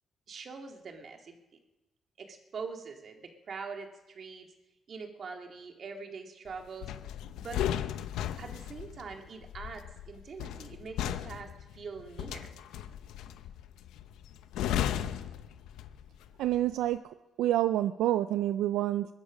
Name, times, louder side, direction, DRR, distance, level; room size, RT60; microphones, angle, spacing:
voice 1, 0.3-1.4 2.2-4.5 4.9-6.9 7.4-7.7 8.4-12.5, right 5 dB, 50° right, 3 dB, 2.2 m, -43 dB
sound 1, 6.8-16.2 16.4-16.7, left 10 dB, 90° left, 0.7 m, -36 dB
voice 2, 16.4-17.0 17.4-19.1, right 13 dB, 85° right, 12 dB, 0.4 m, -27 dB
21.5 x 11.5 x 5.2 m, 1.0 s
cardioid pair, 90°, 0 cm